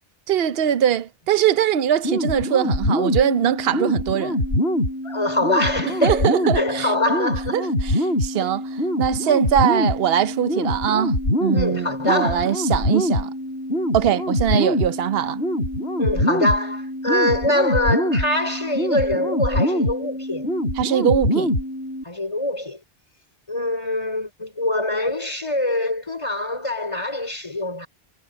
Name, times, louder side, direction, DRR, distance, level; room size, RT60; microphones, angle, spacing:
voice 1, 0.3-4.4 6.0-6.9 7.5-13.3 13.9-15.4 20.8-21.5, right 10 dB, 70° right, 0.9 m, -22 dB
sound 1, 2.0-22.0, left 1 dB, 80° left, 6.9 m, -24 dB
voice 2, 5.0-7.6 8.4-8.5 11.5-12.5 16.0-20.5 22.0-22.8 23.5-27.9, left 1 dB, 30° left, 4.5 m, -24 dB
omnidirectional pair, 1.1 m